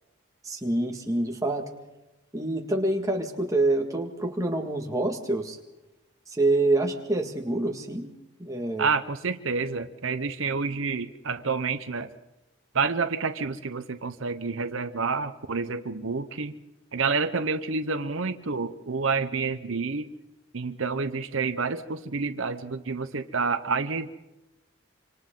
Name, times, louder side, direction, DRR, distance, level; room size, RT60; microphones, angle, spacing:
voice 1, 0.4-1.7 2.3-5.6 6.3-8.1 8.4-8.9, right 2 dB, 15° right, 2 dB, 1.9 m, -26 dB
voice 2, 8.8-12.1 12.7-16.6 16.9-20.1 20.5-24.1, right 4 dB, 75° right, 10 dB, 0.9 m, -28 dB
26.5 x 26.0 x 3.9 m, 0.99 s
head